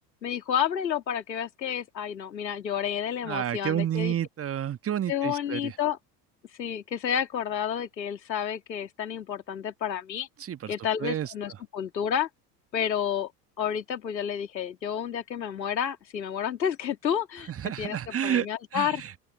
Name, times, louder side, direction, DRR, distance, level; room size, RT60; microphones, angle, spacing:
voice 1, 0.2-4.1 5.1-6.0 6.6-10.3 10.7-12.3 12.7-13.3 13.6-19.0, left 8 dB, 80° left, 2.2 m, -30 dB
voice 2, 3.2-5.7 10.4-10.7 11.0-11.3 17.5-18.5 18.7-19.2, right 10 dB, 25° right, 1.5 m, -30 dB
open air
figure-of-eight pair, 75°, 50 cm